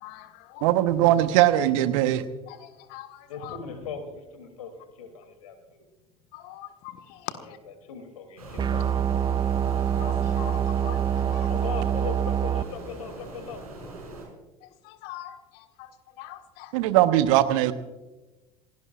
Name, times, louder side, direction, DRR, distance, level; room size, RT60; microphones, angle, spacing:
voice 1, 0.0-0.6 2.5-3.6 6.3-7.4 10.0-11.5 14.8-15.9 16.2-16.7, left 14 dB, 60° left, 8 dB, 1.6 m, -42 dB
voice 2, 0.6-2.2 16.7-17.7, right 13 dB, 65° right, 11 dB, 1.1 m, -20 dB
voice 3, 3.3-5.8 7.4-9.8 11.5-13.6, left 5 dB, 75° left, 6 dB, 3.0 m, -40 dB
sound 1, 8.4-14.3, right 2 dB, 85° right, 6.1 m, -40 dB
sound 2, 8.6-12.6, right 9 dB, 25° right, 0.6 m, -25 dB
27.0 x 17.5 x 2.5 m, 1.1 s
figure-of-eight pair, 65°, 18 cm